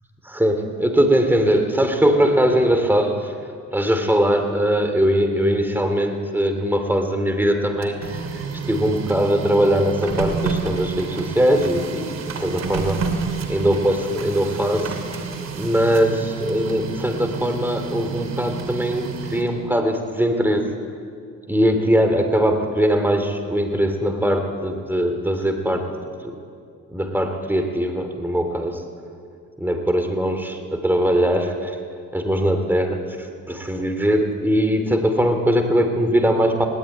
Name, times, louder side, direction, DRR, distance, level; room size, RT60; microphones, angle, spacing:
voice 1, 0.2-3.3 3.7-13.1 13.5-15.0 15.6-20.7 21.5-26.0 26.2-26.3 26.9-28.8 29.6-31.8 32.1-36.7, equal, 5° right, 6 dB, 3.0 m, -21 dB
Printer, 7.6-19.7, right 5 dB, 60° right, 2.9 m, -30 dB
20.0 x 17.5 x 9.3 m, 2.2 s
cardioid pair, 90°, 30 cm